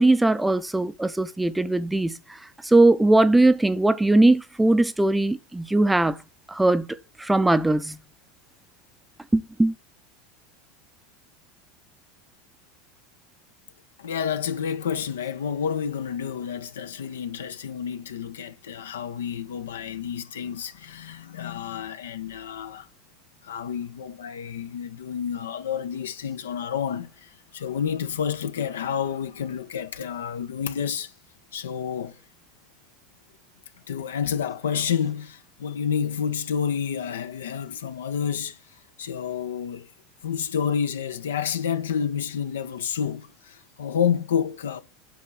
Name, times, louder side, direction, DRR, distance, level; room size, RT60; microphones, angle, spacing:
voice 1, 0.0-6.2 6.5-6.9 7.2-8.0 9.3-9.7, right 2 dB, 5° right, 0.8 m, -20 dB
voice 2, 14.0-22.9 23.4-31.1 31.5-32.2 33.9-38.6 39.0-39.9 40.2-44.8, left 7 dB, 70° left, 1.3 m, -29 dB
11.0 x 6.0 x 6.0 m
figure-of-eight pair, 80°, 0 cm